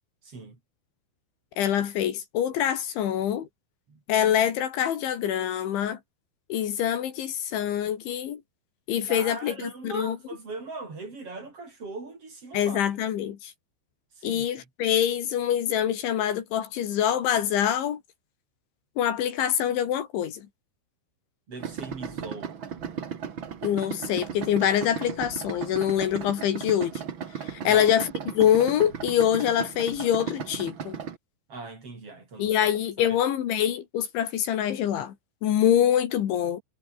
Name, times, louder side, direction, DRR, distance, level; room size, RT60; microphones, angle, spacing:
voice 1, 0.2-0.6 3.9-4.0 9.0-12.8 14.1-14.7 21.5-22.6 27.6-27.9 31.5-33.2, right 3 dB, 30° right, 5.8 m, -40 dB
voice 2, 1.6-3.5 4.1-6.0 6.5-8.4 8.9-10.2 12.5-13.5 14.2-18.0 19.0-20.4 23.6-26.9 27.4-31.0 32.4-35.1 35.4-36.6, left 10 dB, 75° left, 4.5 m, -25 dB
Idling, 21.6-31.2, right 7 dB, 85° right, 1.0 m, -36 dB
omnidirectional pair, 5.6 m